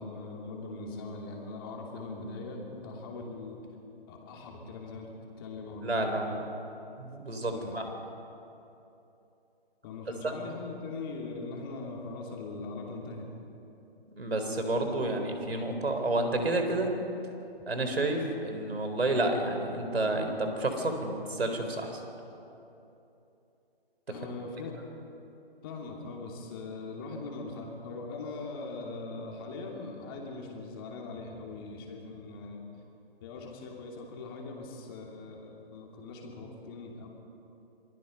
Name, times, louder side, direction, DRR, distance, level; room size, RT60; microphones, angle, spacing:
voice 1, 0.0-3.6 4.1-6.3 7.5-7.8 9.8-13.3 24.1-24.7 25.6-32.6 33.2-37.1, left 3 dB, 20° left, 0 dB, 2.7 m, -41 dB
voice 2, 5.8-6.4 7.0-7.8 10.2-10.3 14.2-16.9 17.7-22.0, right 2 dB, 80° right, 5 dB, 4.2 m, -30 dB
27.5 x 20.5 x 5.5 m, 2.9 s
figure-of-eight pair, 155°, 31 cm